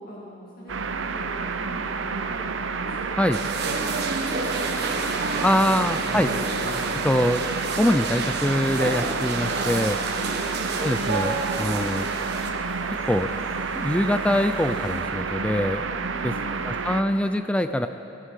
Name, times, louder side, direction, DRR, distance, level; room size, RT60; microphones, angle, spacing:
voice 1, 0.0-2.5 2.8-5.8 10.1-10.4 16.1-16.6, equal, 50° left, -5 dB, 2.2 m, -42 dB
sound 1, 0.7-17.0, right 4 dB, 80° right, 0.7 m, -30 dB
sound 2, 3.3-12.5, right 3 dB, 55° right, 1.4 m, -30 dB
voice 2, 5.4-6.3 6.9-7.4 7.8-10.0 10.8-12.1 13.1-13.3 13.7-15.9 16.2-16.3 16.7-17.9, left 1 dB, 5° left, 9 dB, 0.3 m, -23 dB
sound 3, 9.4-15.0, left 1 dB, 70° left, 3.0 m, -47 dB
17.5 x 15.5 x 4.9 m, 2.8 s
head